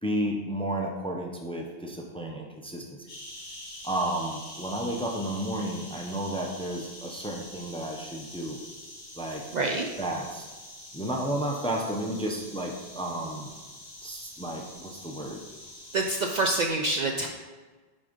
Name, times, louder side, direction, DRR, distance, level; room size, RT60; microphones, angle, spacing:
voice 1, 0.0-3.1 3.8-8.6 9.1-9.4 10.0-10.5 10.9-13.5 14.0-15.4, right 1 dB, 5° left, 0 dB, 0.6 m, -32 dB
sound 1, 3.1-16.7, left 1 dB, 45° left, 1.8 m, -45 dB
voice 2, 9.5-9.9 15.9-17.3, right 2 dB, 55° right, 2 dB, 0.5 m, -26 dB
6.1 x 4.2 x 5.2 m, 1.3 s
omnidirectional pair, 1.0 m